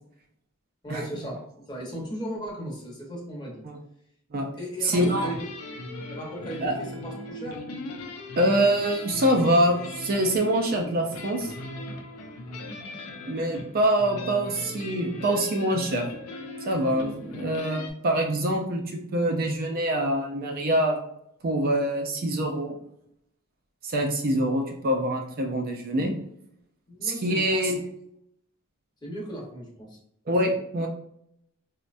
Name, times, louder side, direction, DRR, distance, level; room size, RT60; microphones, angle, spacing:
voice 1, 0.8-1.4 1.7-3.6 4.6-5.4 6.1-7.6 26.9-27.4 27.7-27.8 29.0-30.0, equal, 20° left, -3 dB, 0.9 m, -36 dB
voice 2, 4.8-5.3 6.6-6.8 8.4-11.5 13.3-16.1 16.7-21.0 21.4-22.7 23.8-26.1 27.0-27.8 30.3-30.9, right 1 dB, 45° right, 2 dB, 0.4 m, -25 dB
sound 1, 4.9-17.9, left 2 dB, 90° left, 0.6 m, -38 dB
4.2 x 2.1 x 2.5 m, 0.73 s
head